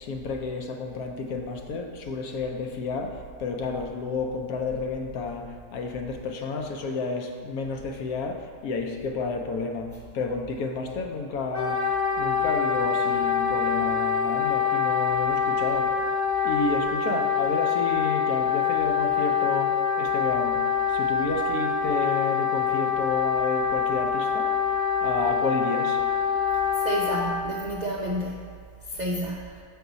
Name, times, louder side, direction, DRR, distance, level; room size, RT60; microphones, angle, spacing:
voice 1, 0.0-11.8 12.2-15.9 16.4-24.5 25.0-26.0, left 3 dB, 75° left, 4 dB, 1.1 m, -31 dB
Wind instrument woodwind instrument, 11.5-27.4, left 7 dB, 55° left, 1.2 m, -25 dB
voice 2, 26.8-28.4 28.9-29.6, right 1 dB, 60° right, -3 dB, 0.4 m, -30 dB
7.3 x 4.6 x 3.9 m, 2.1 s
omnidirectional pair, 1.6 m